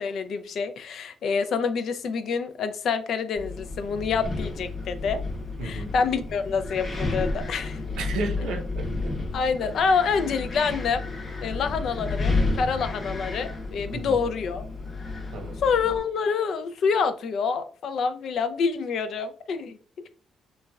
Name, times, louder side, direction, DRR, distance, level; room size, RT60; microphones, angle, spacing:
voice 1, 0.0-5.2 5.6-7.8 9.3-11.0 11.4-14.6 15.6-19.8, left 5 dB, 65° left, 0.3 m, -27 dB
Wind, 3.4-16.0, left 3 dB, 40° left, 0.7 m, -31 dB
voice 2, 5.6-5.9 8.0-9.1 13.9-14.2 15.3-15.6, right 3 dB, 90° right, 0.6 m, -33 dB
3.0 x 2.2 x 2.2 m
cardioid pair, 90°, 0 cm